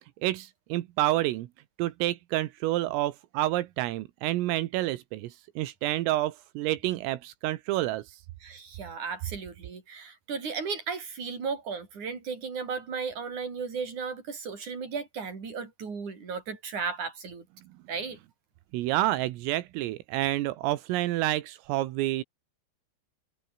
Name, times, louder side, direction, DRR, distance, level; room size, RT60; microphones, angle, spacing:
voice 1, 0.2-1.5 1.8-8.2 18.7-22.2, right 16 dB, 85° right, 3.8 m, -29 dB
voice 2, 8.4-17.5 17.9-18.2, right 5 dB, 35° right, 6.6 m, -35 dB
omnidirectional pair, 5.9 m